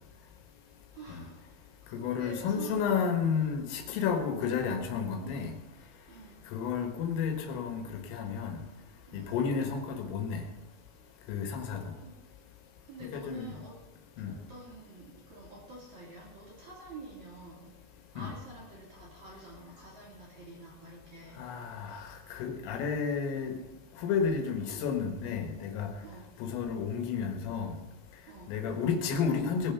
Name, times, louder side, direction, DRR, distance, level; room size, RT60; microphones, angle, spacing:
voice 1, 1.0-1.3 2.0-3.0 5.2-5.5 6.1-6.4 9.1-9.4 12.0-12.1 12.9-13.8 14.3-15.0 15.3-17.7 18.1-21.4 26.0-26.2 28.3-28.5, right 3 dB, 45° right, -4 dB, 2.9 m, -47 dB
voice 2, 1.9-5.5 6.5-8.6 9.1-10.4 11.3-11.9 13.1-13.5 14.2-14.3 18.2-18.3 21.4-23.6 24.0-25.9 26.4-27.8 28.5-29.7, left 6 dB, 75° left, 5 dB, 3.8 m, -31 dB
19.5 x 7.2 x 5.8 m, 1.1 s
omnidirectional pair, 6.0 m